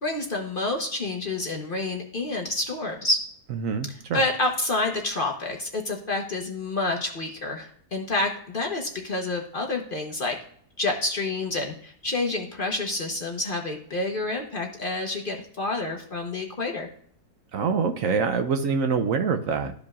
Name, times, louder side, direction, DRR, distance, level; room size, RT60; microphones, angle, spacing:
voice 1, 0.0-3.2 3.8-10.4 10.8-16.9, left 2 dB, 40° left, 2 dB, 0.9 m, -28 dB
voice 2, 3.6-4.2 17.5-19.7, right 5 dB, 65° right, 7 dB, 1.0 m, -25 dB
13.0 x 5.0 x 2.3 m, 0.63 s
omnidirectional pair, 1.7 m